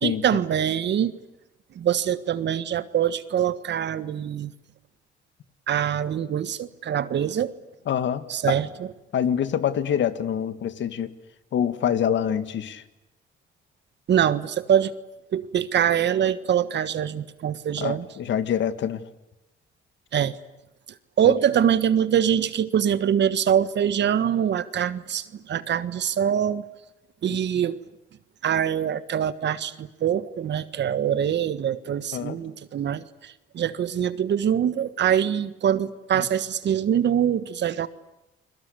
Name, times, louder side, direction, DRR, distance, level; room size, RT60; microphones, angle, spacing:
voice 1, 0.0-1.1 1.7-4.5 5.7-7.5 8.3-8.7 14.1-14.9 15.3-18.1 20.1-20.4 21.2-26.7 27.2-27.8 28.4-37.9, right 9 dB, 60° right, 14 dB, 1.5 m, -24 dB
voice 2, 7.9-8.6 9.1-11.1 11.5-12.8 17.8-19.1 21.2-21.3 27.3-27.4 32.1-32.4 36.1-36.3, left 9 dB, 70° left, 12 dB, 1.9 m, -26 dB
29.5 x 22.5 x 8.4 m, 0.93 s
cardioid pair, 90°, 20 cm